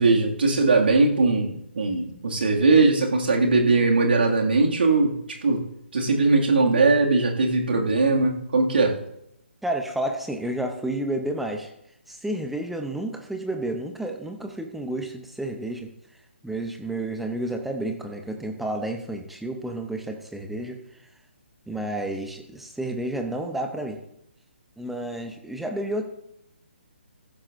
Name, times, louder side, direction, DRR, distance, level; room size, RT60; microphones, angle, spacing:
voice 1, 0.0-5.2 5.4-5.6 5.9-9.0, right 3 dB, 60° right, 0 dB, 2.3 m, -20 dB
voice 2, 9.6-11.7 12.1-15.9 16.4-20.8 21.7-24.0 24.8-26.0, right 1 dB, ahead, 4 dB, 0.9 m, -30 dB
15.0 x 11.5 x 2.7 m, 0.78 s
figure-of-eight pair, 140°, 6 cm